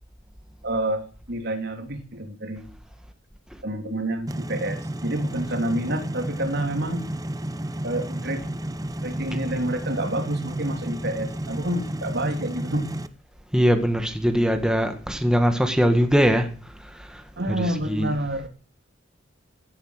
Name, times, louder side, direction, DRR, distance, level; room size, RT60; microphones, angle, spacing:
voice 1, 0.6-2.7 3.6-7.1 7.8-8.5 9.0-12.9 17.4-18.5, right 1 dB, 60° right, 3.3 m, -28 dB
sound 1, 4.3-13.1, right 1 dB, 20° right, 1.0 m, -32 dB
voice 2, 13.5-16.5 17.0-17.2 17.6-18.1, equal, 5° right, 1.7 m, -21 dB
17.0 x 11.5 x 6.5 m
head